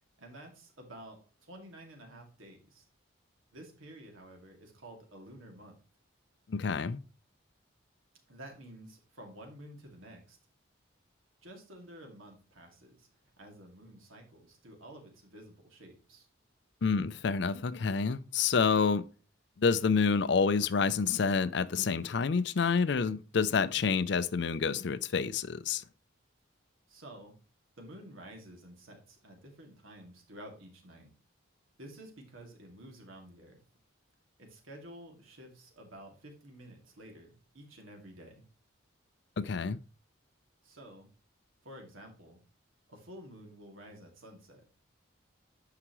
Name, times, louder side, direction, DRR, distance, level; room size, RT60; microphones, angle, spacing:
voice 1, 0.2-2.8 3.5-5.8 8.3-10.4 11.4-13.1 13.4-16.3 26.9-27.3 27.8-31.1 31.8-33.6 34.4-38.4 40.6-41.1 41.6-42.4 42.9-44.6, right 1 dB, 80° right, 2.2 m, -51 dB
voice 2, 6.5-7.0 16.8-19.0 19.6-25.8 39.4-39.8, left 5 dB, 55° left, 0.4 m, -28 dB
9.8 x 5.7 x 3.0 m
head